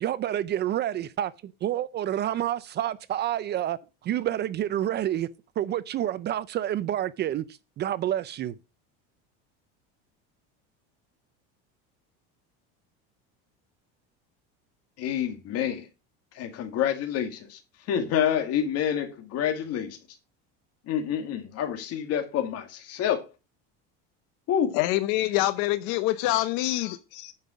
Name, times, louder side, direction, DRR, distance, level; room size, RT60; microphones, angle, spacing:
voice 1, 0.0-3.8 4.0-5.3 5.6-7.4 7.8-8.5, right 12 dB, 35° right, 0.4 m, -28 dB
voice 2, 15.0-15.9 16.3-17.6 17.9-20.0 20.9-23.3 24.5-24.8, left 9 dB, 50° left, 2.1 m, -28 dB
voice 3, 24.7-27.3, left 16 dB, 70° left, 0.7 m, -26 dB
9.5 x 5.6 x 5.0 m
cardioid pair, 135°, 31 cm